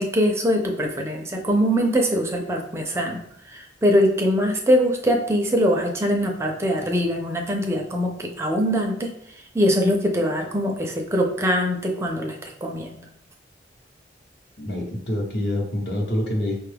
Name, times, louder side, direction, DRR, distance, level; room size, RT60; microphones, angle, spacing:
voice 1, 0.0-13.0, equal, 15° right, 2 dB, 0.4 m, -23 dB
voice 2, 14.6-16.6, left 1 dB, 65° left, 0 dB, 0.9 m, -26 dB
5.3 x 2.2 x 3.3 m, 0.71 s
head